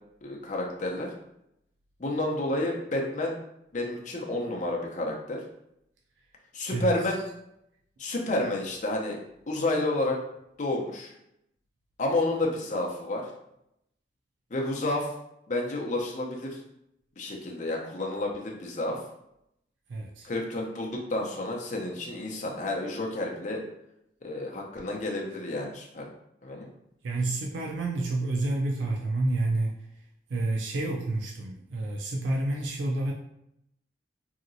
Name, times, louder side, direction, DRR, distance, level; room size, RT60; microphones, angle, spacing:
voice 1, 0.2-1.1 2.0-3.3 3.7-5.4 6.5-7.2 8.0-9.2 9.5-10.2 10.6-11.1 12.0-13.2 14.5-15.1 15.5-16.6 17.2-19.0 20.2-23.6 24.2-26.0 26.4-26.7, left 2 dB, 45° left, 0 dB, 0.6 m, -30 dB
voice 2, 6.7-7.1 19.9-20.3 27.0-29.7 30.3-33.1, right 2 dB, 90° right, 0 dB, 0.4 m, -29 dB
2.9 x 2.8 x 2.6 m, 0.79 s
head